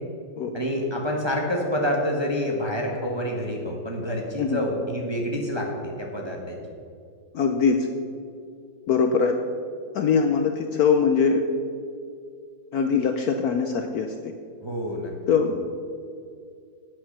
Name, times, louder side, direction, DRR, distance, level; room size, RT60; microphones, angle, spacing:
voice 1, 0.5-6.6 14.6-15.1, equal, 15° right, 0 dB, 1.0 m, -27 dB
voice 2, 7.3-7.9 8.9-9.4 9.9-11.4 12.7-14.3 15.3-15.6, left 5 dB, 65° left, 5 dB, 1.0 m, -22 dB
9.4 x 8.7 x 6.6 m, 2.3 s
omnidirectional pair, 2.1 m